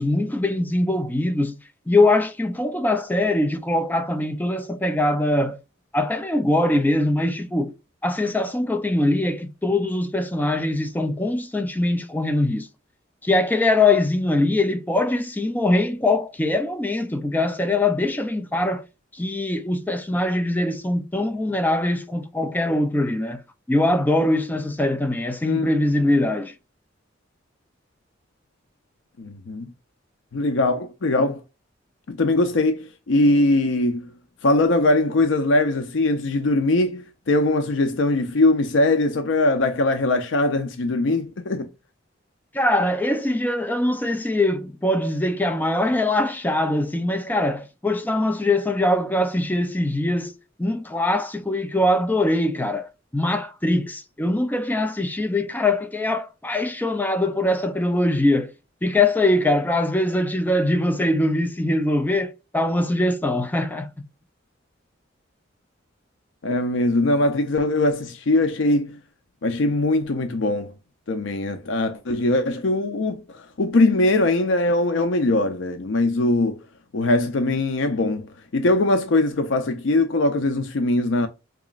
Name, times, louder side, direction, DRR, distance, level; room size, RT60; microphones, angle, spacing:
voice 1, 0.0-1.6 1.9-5.6 5.9-7.7 8.0-12.7 13.2-18.8 19.1-23.4 23.7-26.5 42.5-50.3 50.6-52.9 53.1-58.5 58.8-63.9, left 1 dB, 10° left, 0.4 m, -22 dB
voice 2, 29.2-29.7 30.3-31.4 32.1-34.1 34.4-41.7 66.4-69.0 69.4-70.7 71.1-76.6 76.9-81.3, left 2 dB, 75° left, 0.5 m, -21 dB
4.8 x 3.0 x 2.3 m
head